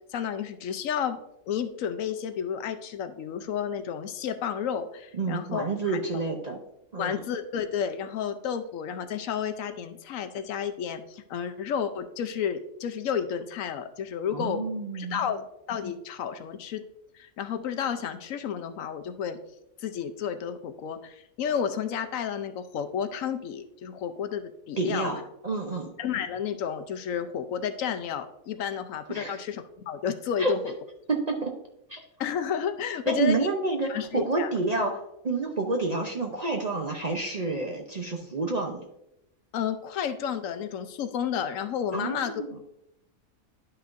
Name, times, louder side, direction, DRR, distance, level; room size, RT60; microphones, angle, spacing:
voice 1, 0.1-1.2 1.5-6.0 7.0-14.6 14.9-16.8 17.1-19.4 19.8-25.1 26.0-30.7 32.2-33.5 33.9-34.5 39.5-42.6, left 8 dB, 75° left, 9 dB, 1.0 m, -31 dB
voice 2, 5.1-6.6 6.9-7.2 14.3-15.3 24.8-25.9 29.1-29.4 30.4-30.5 31.1-31.5 31.9-32.0 33.1-34.9 35.2-38.8 41.9-42.6, right 3 dB, 40° right, 1 dB, 0.6 m, -29 dB
11.0 x 5.8 x 2.5 m, 0.85 s
omnidirectional pair, 1.4 m